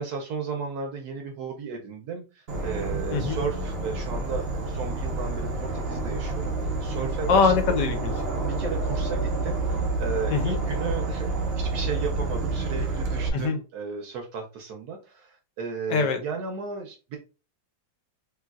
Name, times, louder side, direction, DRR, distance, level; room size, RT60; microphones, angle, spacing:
voice 1, 0.0-7.5 8.5-17.2, right 5 dB, 70° right, 3 dB, 1.0 m, -34 dB
Insect / Frog, 2.5-13.3, right 3 dB, 85° right, 0.5 m, -29 dB
voice 2, 7.3-8.1 10.3-10.6 13.3-13.6 15.9-16.2, left 4 dB, 70° left, 5 dB, 1.3 m, -23 dB
3.2 x 3.0 x 2.3 m, 0.32 s
omnidirectional pair, 2.1 m